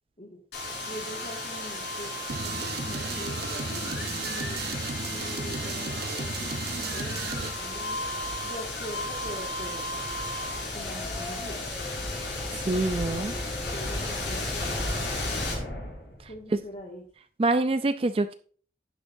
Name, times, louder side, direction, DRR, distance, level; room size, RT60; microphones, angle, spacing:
sound 1, 0.5-16.4, left 2 dB, 70° left, 5.2 m, -34 dB
voice 1, 0.9-2.1 2.4-4.6 5.1-8.0 8.4-10.0 10.7-11.6 12.5-15.5 16.3-17.0, equal, 40° left, -2 dB, 1.8 m, -43 dB
sound 2, 2.3-7.5, right 4 dB, 55° right, 0.8 m, -34 dB
voice 2, 12.6-13.3 17.4-18.4, right 2 dB, 30° right, 11 dB, 0.4 m, -25 dB
11.0 x 10.0 x 2.6 m, 0.43 s
head